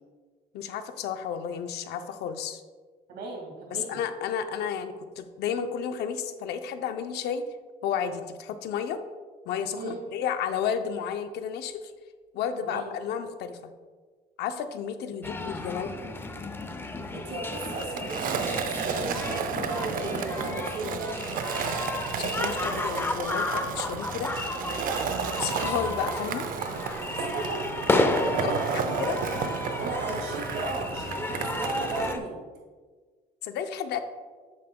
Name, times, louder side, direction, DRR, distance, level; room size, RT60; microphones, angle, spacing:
voice 1, 0.5-2.6 3.7-7.4 7.8-9.0 9.5-11.8 12.3-13.7 14.4-15.9 20.6-21.1 22.1-24.6 25.4-26.5 28.4-29.2 33.4-34.0, left 8 dB, 75° left, 9 dB, 0.6 m, -32 dB
voice 2, 3.1-4.0 9.7-10.0 12.6-12.9 17.1-21.2 27.1-27.6 28.1-28.8 29.8-32.5, right 3 dB, 70° right, 0 dB, 2.0 m, -36 dB
sound 1, 15.2-32.2, left 2 dB, 15° left, 0.5 m, -32 dB
Skateboard, 17.5-32.1, right 6 dB, 55° right, 0.6 m, -33 dB
7.6 x 7.3 x 2.2 m, 1.5 s
cardioid pair, 110°, 17 cm